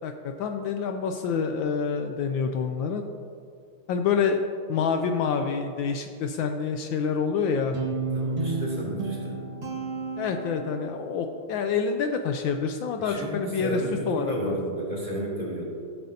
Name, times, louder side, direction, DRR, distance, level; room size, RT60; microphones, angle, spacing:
voice 1, 0.0-3.0 3.9-4.4 4.7-7.8 10.2-13.8 14.1-14.6, left 6 dB, 75° left, 6 dB, 1.3 m, -27 dB
Guitar, 7.7-11.0, right 3 dB, 55° right, 2.3 m, -31 dB
voice 2, 8.1-9.4 13.0-15.6, right 1 dB, 20° right, -6 dB, 2.7 m, -32 dB
16.5 x 7.7 x 2.8 m, 2.4 s
omnidirectional pair, 2.3 m